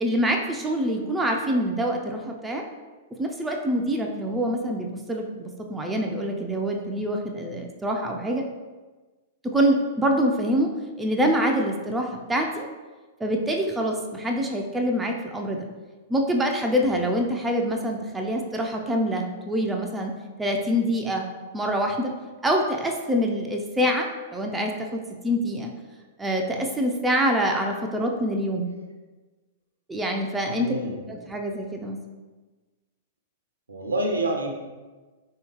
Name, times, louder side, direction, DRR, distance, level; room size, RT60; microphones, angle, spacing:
voice 1, 0.0-2.6 3.2-8.4 9.4-10.7 11.0-12.7 13.2-15.7 16.1-20.1 20.4-21.3 21.5-22.1 22.4-25.7 26.2-28.7 29.9-30.7 31.3-32.0, equal, 10° right, 1 dB, 0.3 m, -25 dB
voice 2, 30.5-31.2 33.7-34.5, right 1 dB, 75° right, 2 dB, 0.5 m, -28 dB
3.3 x 2.8 x 3.0 m, 1.3 s
figure-of-eight pair, 100°, 0 cm